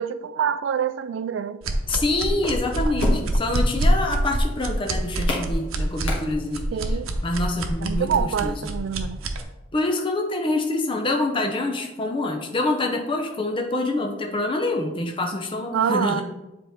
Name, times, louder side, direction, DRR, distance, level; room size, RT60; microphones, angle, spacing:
voice 1, 0.0-1.6 6.7-7.1 7.8-9.3 15.7-16.2, right 8 dB, 65° right, 0.3 m, -26 dB
sound 1, 1.6-9.4, right 1 dB, 90° right, 0.7 m, -25 dB
sound 2, 1.8-6.9, left 2 dB, 85° left, 1.8 m, -33 dB
voice 2, 1.9-6.6 7.2-8.7 9.7-16.2, left 2 dB, 25° left, 0.6 m, -26 dB
7.7 x 4.3 x 3.5 m
head